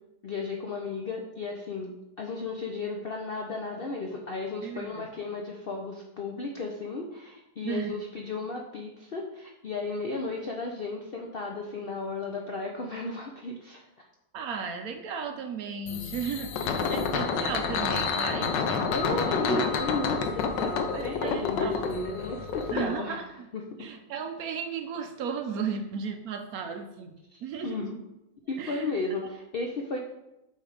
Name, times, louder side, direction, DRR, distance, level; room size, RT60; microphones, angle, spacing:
voice 1, 0.2-1.9 2.2-14.1 15.3-15.4 18.9-23.3 23.5-23.9 27.6-28.0 28.5-30.0, left 3 dB, 60° left, 1 dB, 0.5 m, -34 dB
voice 2, 4.6-5.0 7.6-7.9 14.3-18.6 19.1-19.6 20.9-21.8 22.7-23.2 23.8-27.8 28.6-28.9, right 6 dB, 70° right, 6 dB, 1.0 m, -35 dB
sound 1, 15.9-22.8, left 5 dB, 90° left, 1.4 m, -29 dB
8.0 x 3.3 x 4.9 m, 0.93 s
omnidirectional pair, 1.8 m